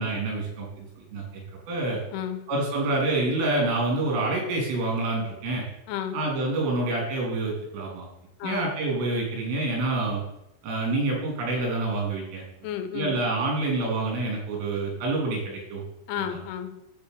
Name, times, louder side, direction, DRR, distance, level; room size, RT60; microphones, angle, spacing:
voice 1, 0.0-2.0 2.5-5.6 6.1-8.1 8.4-10.2 10.6-12.4 12.9-15.8 16.2-16.4, right 2 dB, 85° right, -2 dB, 6.1 m, -27 dB
voice 2, 2.1-2.4 5.9-6.2 8.4-8.7 12.6-13.2 16.1-16.7, left 9 dB, 85° left, 7 dB, 3.4 m, -32 dB
11.0 x 4.7 x 8.2 m, 0.86 s
omnidirectional pair, 5.6 m